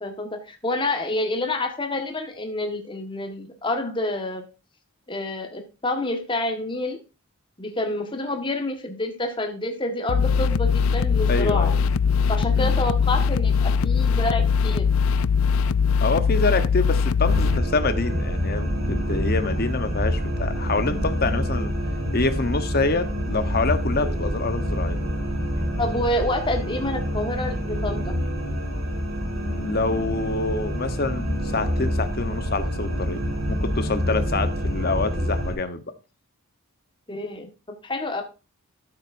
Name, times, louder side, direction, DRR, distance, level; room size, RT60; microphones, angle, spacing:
voice 1, 0.0-4.4 5.1-7.0 7.6-11.7 12.3-14.9 20.9-21.1 24.0-24.2 25.8-28.1 37.1-37.5 37.8-38.2, left 1 dB, 20° left, 5 dB, 1.5 m, -28 dB
sound 1, 10.1-17.6, left 6 dB, 70° left, 0.4 m, -21 dB
voice 2, 11.3-11.8 12.5-12.8 16.0-21.7 22.1-25.0 29.4-33.2 33.5-35.8, left 3 dB, 45° left, 10 dB, 1.0 m, -26 dB
sound 2, 17.2-35.5, equal, 70° right, 3.8 m, -27 dB
12.5 x 7.5 x 2.6 m, 0.30 s
head